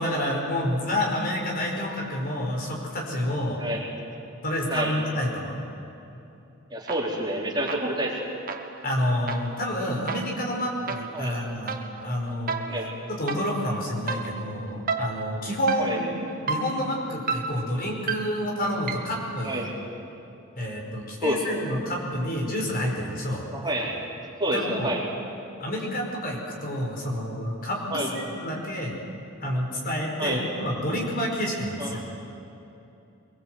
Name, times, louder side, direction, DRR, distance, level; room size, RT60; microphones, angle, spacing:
voice 1, 0.0-3.6 4.4-5.6 8.8-12.6 13.1-16.0 16.5-19.7 20.6-23.5 24.5-25.0 25.6-29.0 29.4-32.1, left 1 dB, 45° left, -1 dB, 5.0 m, -29 dB
voice 2, 6.7-8.1 11.1-11.3 12.7-12.9 15.8-16.0 19.4-19.7 21.2-21.8 23.5-23.9 24.4-25.0 27.9-28.1 30.2-30.4 31.8-32.0, right 1 dB, 20° right, -3 dB, 3.8 m, -28 dB
sound 1, 6.9-7.3 7.7-19.3, right 4 dB, 45° right, 1.5 m, -34 dB
24.0 x 22.5 x 8.0 m, 2.8 s
head